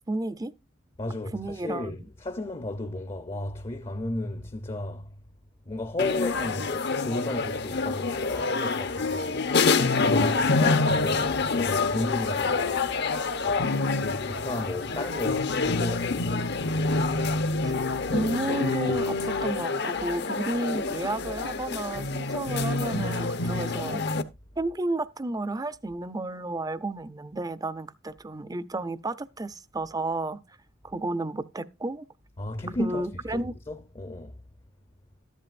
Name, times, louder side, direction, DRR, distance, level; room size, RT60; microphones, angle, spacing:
voice 1, 0.1-0.5 1.3-1.9 17.6-17.7 18.1-24.0 24.6-30.4 30.8-32.1 32.8-33.5, right 2 dB, 20° right, 0.5 m, -32 dB
voice 2, 1.0-5.2 5.7-9.5 9.8-13.0 13.4-16.6 18.2-18.3 32.4-34.4, left 2 dB, 30° left, 0.7 m, -34 dB
sound 1, 6.0-24.2, left 3 dB, 60° left, 0.8 m, -27 dB
13.5 x 11.0 x 2.5 m
head